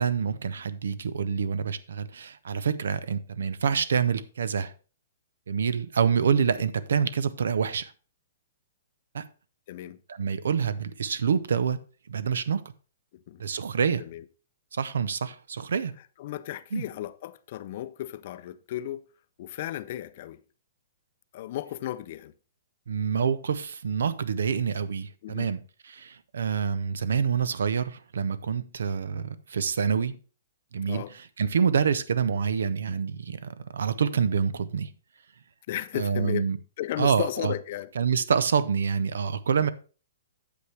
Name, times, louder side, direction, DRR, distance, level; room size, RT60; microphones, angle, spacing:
voice 1, 0.0-4.7 5.5-7.9 9.1-9.3 10.1-11.8 12.1-12.7 13.4-14.0 14.7-15.9 16.7-16.8 22.9-30.2 30.7-34.9 35.9-36.6 37.0-37.5 37.9-39.7, right 6 dB, 85° right, 0.6 m, -27 dB
voice 2, 9.7-10.0 13.3-13.4 14.0-14.2 16.2-19.0 19.4-20.4 21.3-22.3 25.2-25.5 30.9-31.1 35.7-36.5 36.8-37.9 39.6-39.7, left 13 dB, 35° left, 0.5 m, -34 dB
8.4 x 7.9 x 3.3 m
hypercardioid pair, 175°, 0 cm